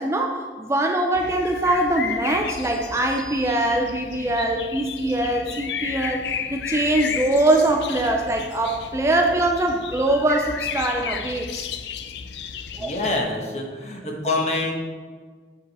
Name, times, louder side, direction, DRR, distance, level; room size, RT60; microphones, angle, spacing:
voice 1, 0.0-6.2 6.5-11.6 12.8-13.0, right 1 dB, 15° right, 2 dB, 0.4 m, -22 dB
sound 1, 1.1-13.2, left 7 dB, 80° left, 0.4 m, -33 dB
sound 2, 2.5-4.2, equal, 5° left, 1.5 m, -46 dB
voice 2, 12.8-14.7, left 2 dB, 40° left, 1 dB, 1.1 m, -26 dB
7.4 x 5.0 x 4.1 m, 1.5 s
head